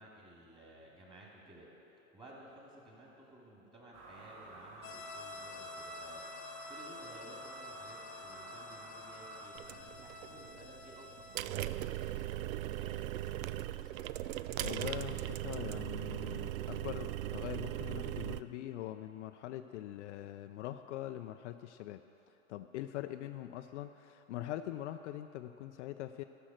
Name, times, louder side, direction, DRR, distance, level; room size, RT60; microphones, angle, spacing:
voice 1, 0.0-1.7 2.1-14.0 23.0-23.1, right 1 dB, 10° right, -4 dB, 2.5 m, -56 dB
sound 1, 3.9-9.5, right 2 dB, 40° right, 1.6 m, -51 dB
sound 2, 4.8-11.4, left 2 dB, 30° left, 1.0 m, -49 dB
sound 3, 9.5-18.4, right 14 dB, 75° right, 0.5 m, -39 dB
voice 2, 14.6-22.0 22.5-26.2, left 13 dB, 60° left, 8 dB, 0.5 m, -43 dB
13.5 x 6.3 x 6.3 m, 3.0 s
hypercardioid pair, 120°, 41 cm